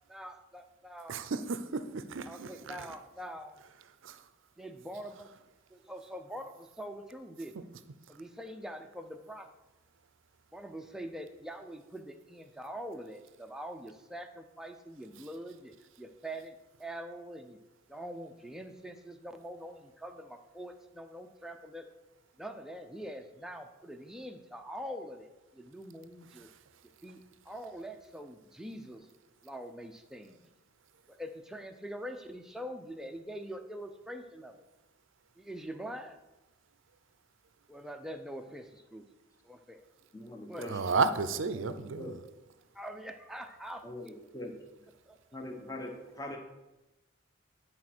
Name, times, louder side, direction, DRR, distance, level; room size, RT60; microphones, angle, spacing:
voice 1, 0.1-1.2 2.2-3.6 4.6-5.4 5.7-7.7 8.1-9.5 10.5-15.7 16.0-17.6 17.9-21.9 22.4-26.5 27.0-29.1 29.4-30.4 31.1-34.6 35.4-36.2 37.7-39.0 39.4-39.8 40.5-40.7 42.7-44.1 45.1-45.2, equal, ahead, 5 dB, 0.6 m, -44 dB
voice 2, 1.1-2.8 4.0-4.2 40.7-42.1, right 4 dB, 70° right, 12 dB, 0.5 m, -32 dB
voice 3, 40.1-41.0 41.5-42.4 43.8-44.9 45.3-46.4, left 1 dB, 15° left, 2 dB, 1.1 m, -43 dB
11.0 x 4.3 x 6.1 m, 1.0 s
head